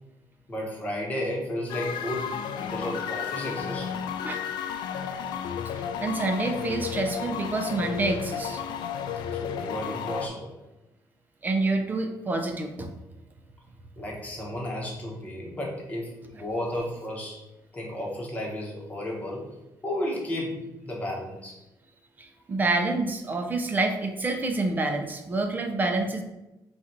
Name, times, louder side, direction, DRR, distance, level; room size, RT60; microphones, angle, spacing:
voice 1, 0.5-2.3 2.6-3.9 9.3-10.5 14.0-17.4 17.7-19.5 19.8-21.6, left 1 dB, 20° left, -3 dB, 1.1 m, -33 dB
sound 1, 1.7-10.3, left 8 dB, 75° left, 0.3 m, -33 dB
voice 2, 6.0-8.6 11.4-12.9 22.2-26.2, right 2 dB, 25° right, 4 dB, 0.5 m, -27 dB
4.1 x 2.5 x 4.5 m, 0.96 s
cardioid pair, 145°, 8 cm